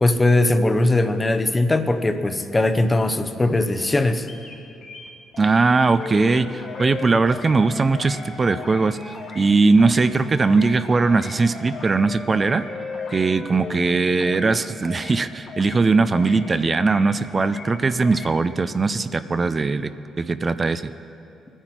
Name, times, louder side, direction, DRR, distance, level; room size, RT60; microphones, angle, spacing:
voice 1, 0.0-4.3, left 2 dB, 20° left, 9 dB, 0.9 m, -20 dB
sound 1, 4.3-4.5 4.8-5.6 5.9-6.3 6.6-7.0 7.2-7.6 7.9-8.2 8.5-8.9 9.1-9.5 9.8-10.1 10.4-10.8 11.0-11.4 11.7-12.0 12.3-12.7 12.9-13.3 13.6-13.9 14.2-14.6 14.8-15.2 15.5-15.8 16.1-16.5 16.7-17.1 17.4-17.7 18.0-18.3, left 4 dB, 65° left, 2.5 m, -40 dB
voice 2, 5.4-9.0 9.3-12.6 13.1-20.9, right 3 dB, 30° right, 12 dB, 0.5 m, -20 dB
Wind instrument woodwind instrument, 5.9-9.4 10.2-13.9, left 4 dB, 50° left, 2.6 m, -37 dB
21.5 x 10.0 x 4.5 m, 2.8 s
cardioid pair, 90°, 0 cm